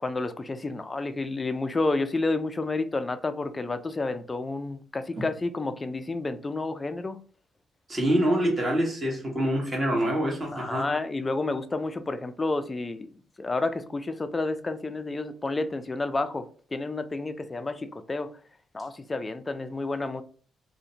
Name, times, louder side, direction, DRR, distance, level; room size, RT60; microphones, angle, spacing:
voice 1, 0.0-7.2 10.5-13.1 13.4-16.4 16.7-18.3 18.7-20.2, left 3 dB, 30° left, 0.3 m, -30 dB
voice 2, 7.9-10.8, right 1 dB, 35° right, 1.1 m, -25 dB
2.5 x 2.1 x 2.7 m
supercardioid pair, 65°, 0 cm